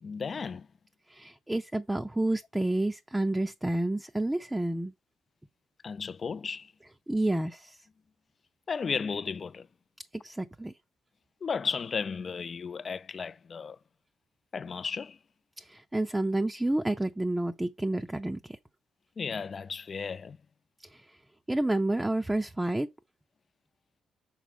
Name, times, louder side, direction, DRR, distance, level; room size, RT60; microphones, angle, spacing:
voice 1, 0.0-0.7 5.8-6.7 8.7-9.7 11.4-13.8 14.5-15.2 19.2-20.4, left 5 dB, 40° left, 0.4 m, -34 dB
voice 2, 1.1-4.9 7.1-7.8 10.2-10.7 15.6-18.6 20.9-21.1 21.5-22.9, right 1 dB, 10° right, 0.5 m, -29 dB
6.1 x 4.1 x 5.2 m
cardioid pair, 90°, 0 cm